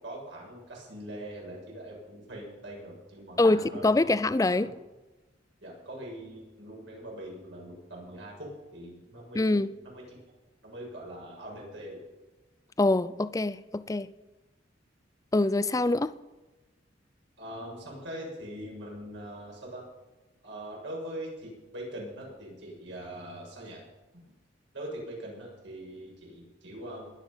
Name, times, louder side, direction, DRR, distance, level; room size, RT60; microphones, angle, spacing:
voice 1, 0.0-4.2 4.6-4.8 5.6-10.0 10.6-12.0 17.4-19.8 20.4-23.8 24.7-27.1, right 1 dB, 75° right, 6.9 m, -42 dB
voice 2, 3.4-4.7 9.3-9.7 12.8-14.1 15.3-16.1, left 2 dB, 20° left, 0.4 m, -24 dB
21.0 x 9.2 x 5.6 m
head